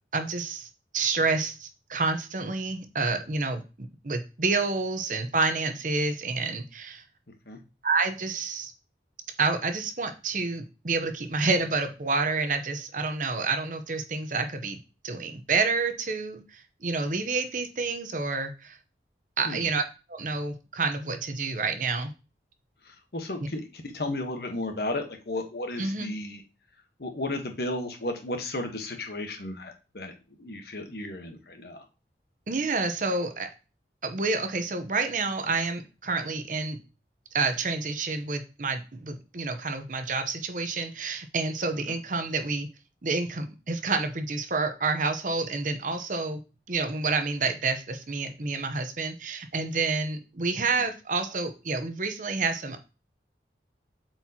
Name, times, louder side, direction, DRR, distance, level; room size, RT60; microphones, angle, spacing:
voice 1, 0.1-3.6 4.0-7.0 7.8-8.7 9.4-14.8 15.0-18.8 19.4-19.8 20.1-22.1 25.8-26.1 32.5-33.5 34.0-36.8 37.3-42.7 43.0-46.4 46.7-52.8, right 3 dB, 45° right, 7 dB, 0.8 m, -29 dB
voice 2, 22.9-26.4 27.0-30.1 30.4-31.8, left 2 dB, 60° left, 5 dB, 1.1 m, -34 dB
7.7 x 4.5 x 2.8 m, 0.31 s
head